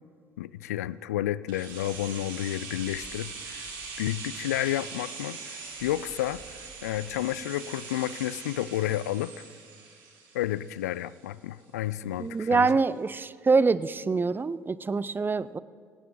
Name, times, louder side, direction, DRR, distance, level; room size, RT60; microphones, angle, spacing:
voice 1, 0.4-9.3 10.3-12.7, left 13 dB, 85° left, 19 dB, 0.4 m, -31 dB
sound 1, 1.5-11.3 11.6-11.7, right 5 dB, 70° right, 3.4 m, -42 dB
voice 2, 12.2-15.6, right 4 dB, 25° right, 18 dB, 0.5 m, -25 dB
18.5 x 15.5 x 3.8 m, 2.1 s
hypercardioid pair, 60°, 8 cm